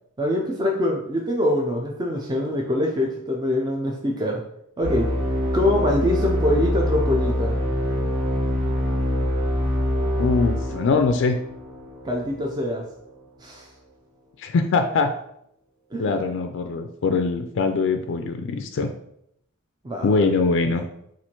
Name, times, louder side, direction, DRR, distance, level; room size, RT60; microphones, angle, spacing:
voice 1, 0.2-4.4 4.8-5.1 5.5-7.6 12.0-12.8 13.4-13.7 15.9-16.4 19.8-20.2, left 1 dB, 20° right, -1 dB, 0.5 m, -24 dB
sound 1, 4.8-12.3, left 1 dB, 80° right, 1.6 m, -24 dB
voice 2, 10.2-11.4 14.4-15.1 16.0-18.9 20.0-20.8, left 4 dB, 60° left, 6 dB, 0.4 m, -22 dB
4.3 x 2.5 x 4.3 m, 0.73 s
head